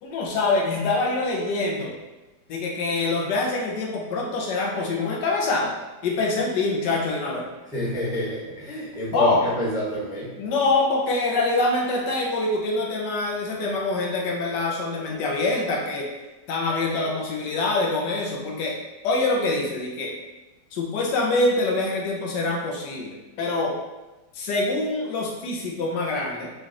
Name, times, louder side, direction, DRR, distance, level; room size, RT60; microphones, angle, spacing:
voice 1, 0.0-1.9 2.5-5.7 6.0-7.5 9.1-9.4 10.4-16.1 16.5-18.7 19.0-20.1 20.7-23.7 24.3-26.5, left 2 dB, 75° left, -1 dB, 1.4 m, -25 dB
voice 2, 7.7-10.3, equal, 5° right, -8 dB, 0.8 m, -29 dB
3.8 x 3.2 x 3.6 m, 1.1 s
omnidirectional pair, 1.9 m